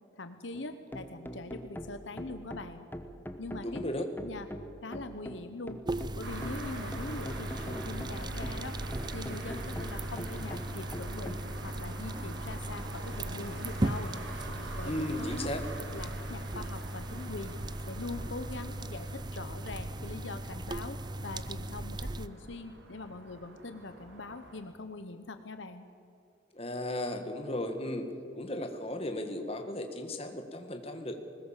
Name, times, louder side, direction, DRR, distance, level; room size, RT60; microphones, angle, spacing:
voice 1, 0.2-2.9 3.4-3.8 4.2-4.5 4.8-5.8 6.2-8.8 9.1-14.2 14.8-15.5 15.9-17.6 17.9-21.0 21.2-25.9, left 3 dB, 70° left, 9 dB, 1.0 m, -42 dB
sound 1, 0.5-11.5, equal, 10° left, 0.9 m, -43 dB
voice 2, 3.6-4.1 14.8-15.6 26.5-28.1 28.3-31.2, left 1 dB, 30° left, 5 dB, 1.7 m, -35 dB
sound 2, 5.8-22.3, right 1 dB, 20° right, 0.5 m, -38 dB
sound 3, 6.2-24.6, right 1 dB, 70° right, 3.0 m, -46 dB
21.0 x 19.5 x 7.4 m, 2.6 s
head